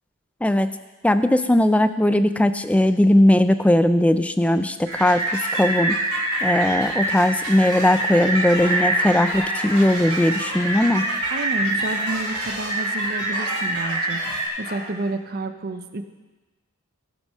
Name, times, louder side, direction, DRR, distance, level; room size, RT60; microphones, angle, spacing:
voice 1, 1.0-5.9 6.4-11.0, left 1 dB, 5° left, 11 dB, 0.3 m, -19 dB
sound 1, 4.9-14.5, right 1 dB, 85° right, 3.6 m, -25 dB
sound 2, 7.0-15.1, left 2 dB, 45° left, 2.3 m, -39 dB
voice 2, 11.3-16.0, right 2 dB, 45° right, 9 dB, 0.6 m, -30 dB
16.0 x 6.2 x 5.5 m, 1.2 s
head